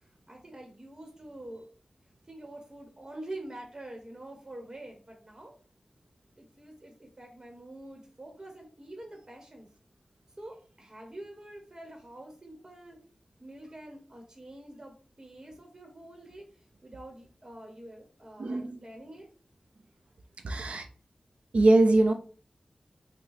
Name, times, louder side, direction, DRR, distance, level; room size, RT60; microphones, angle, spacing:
voice 1, 0.3-1.6 2.3-5.5 6.4-9.7 10.4-13.0 13.4-16.5 16.8-19.3, right 1 dB, 30° right, 2 dB, 1.1 m, -46 dB
voice 2, 18.4-18.8 20.4-20.8 21.5-22.1, right 2 dB, 70° right, 6 dB, 0.6 m, -22 dB
5.8 x 2.2 x 4.1 m, 0.40 s
wide cardioid pair, 80°, 2 cm